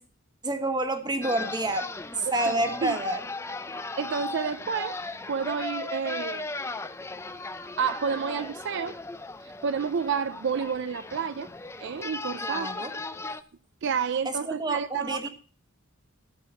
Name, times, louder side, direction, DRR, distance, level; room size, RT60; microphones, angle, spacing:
voice 1, 0.4-3.2 3.7-3.8 12.4-12.9 14.2-15.3, right 2 dB, 20° right, 1.3 m, -29 dB
sound 1, 1.2-13.4, left 3 dB, 15° left, 0.5 m, -37 dB
voice 2, 2.5-3.0 4.0-5.0 5.3-6.5 7.8-9.0 9.4-11.5 11.8-12.7 13.8-15.3, right 6 dB, 60° right, 0.4 m, -30 dB
14.0 x 4.7 x 6.9 m
head